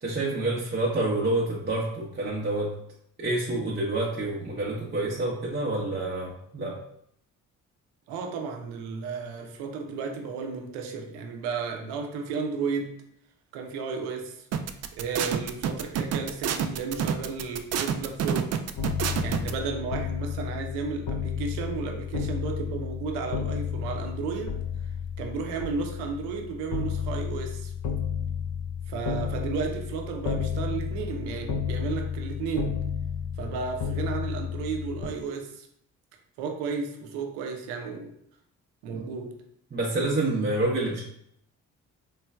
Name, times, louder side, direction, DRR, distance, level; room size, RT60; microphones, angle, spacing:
voice 1, 0.0-2.7 3.2-6.8 38.9-39.0 39.7-41.0, right 2 dB, 25° right, -4 dB, 0.8 m, -28 dB
voice 2, 8.1-12.9 13.5-14.5 14.9-18.5 19.2-24.5 25.2-27.7 28.9-32.7 33.4-35.7 36.4-38.1 38.8-39.3, right 5 dB, 85° right, 4 dB, 0.6 m, -33 dB
sound 1, 14.5-19.5, right 7 dB, 40° right, 0.4 m, -28 dB
sound 2, 18.8-35.1, left 7 dB, 50° left, 0.6 m, -32 dB
3.2 x 3.1 x 2.2 m, 0.70 s
hypercardioid pair, 50°, 39 cm